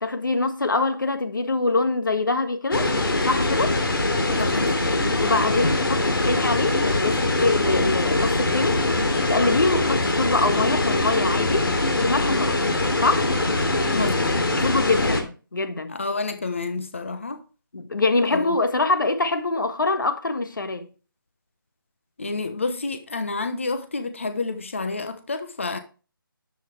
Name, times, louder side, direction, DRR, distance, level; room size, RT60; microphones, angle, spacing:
voice 1, 0.0-3.0 3.2-3.7 5.2-8.8 9.3-12.6 13.0-13.3 14.5-15.9 17.7-20.9, left 3 dB, 60° left, 1.6 m, -24 dB
sound 1, 2.7-15.2, left 2 dB, 75° left, 2.8 m, -23 dB
voice 2, 4.4-4.9 13.9-14.4 14.9-15.2 15.9-17.4 18.3-18.6 22.2-25.8, left 3 dB, 35° left, 1.0 m, -29 dB
10.5 x 8.0 x 3.3 m
figure-of-eight pair, 180°, 12 cm